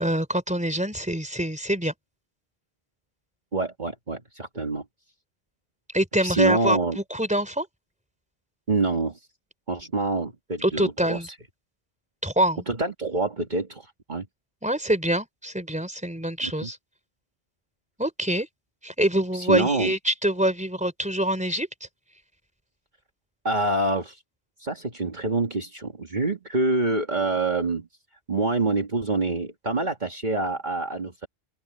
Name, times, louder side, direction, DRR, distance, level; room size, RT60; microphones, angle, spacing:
voice 1, 0.0-1.9 5.9-7.7 10.6-11.3 12.2-12.6 14.6-16.8 18.0-18.5 18.8-21.7, right 1 dB, 5° right, 3.5 m, -25 dB
voice 2, 3.5-4.8 6.2-7.0 8.7-9.2 9.7-11.2 12.7-14.3 16.4-16.7 19.3-19.9 23.4-24.2 24.6-27.9 28.3-31.3, right 2 dB, 45° right, 2.1 m, -26 dB
open air
omnidirectional pair, 1.0 m